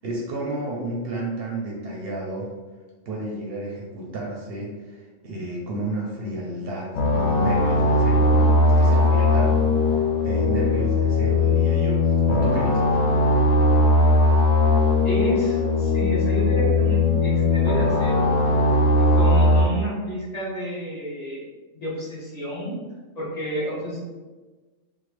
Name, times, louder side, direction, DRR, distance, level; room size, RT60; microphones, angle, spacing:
voice 1, 0.0-2.5 3.1-9.7 10.2-13.0, right 1 dB, 60° right, -2 dB, 0.7 m, -31 dB
sound 1, 6.9-19.6, left 2 dB, 85° left, 1.0 m, -19 dB
voice 2, 15.0-18.3 19.1-21.4 21.7-22.8 23.1-24.0, equal, 35° left, -8 dB, 1.1 m, -29 dB
3.6 x 2.1 x 3.2 m, 1.3 s
omnidirectional pair, 1.3 m